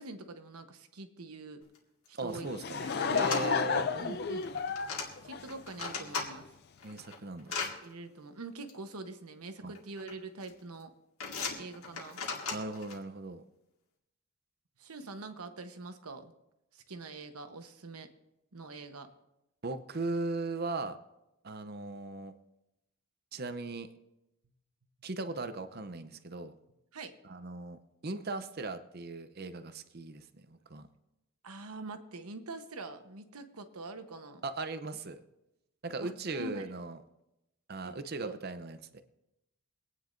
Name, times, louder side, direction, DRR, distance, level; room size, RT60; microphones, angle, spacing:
voice 1, 0.0-1.7 2.1-2.5 2.8-4.5 5.2-6.5 7.8-10.9 11.5-12.2 14.8-16.3 16.7-18.1 18.5-19.1 26.9-27.1 31.4-34.4 36.0-36.7 37.8-38.4, right 3 dB, 90° right, 8 dB, 1.1 m, -45 dB
sound 1, 1.7-1.8 2.0-2.4 2.9-3.4 4.4-5.1 5.5-6.3 6.8-7.7 8.7-8.8 9.7-10.1 10.4-10.8 11.2-12.9, left 5 dB, 80° left, 2.0 m, -37 dB
voice 2, 2.1-2.8 3.1-3.9 6.8-7.6 9.6-9.7 12.5-13.4 19.6-21.0 21.4-22.4 23.3-23.9 25.0-26.6 27.2-30.9 34.4-35.2 35.8-37.0 37.7-39.0, right 3 dB, 45° right, 10 dB, 0.7 m, -38 dB
Laughter / Crowd, 2.3-6.1, left 5 dB, 45° left, 0.4 m, -32 dB
24.5 x 9.5 x 2.6 m, 0.90 s
head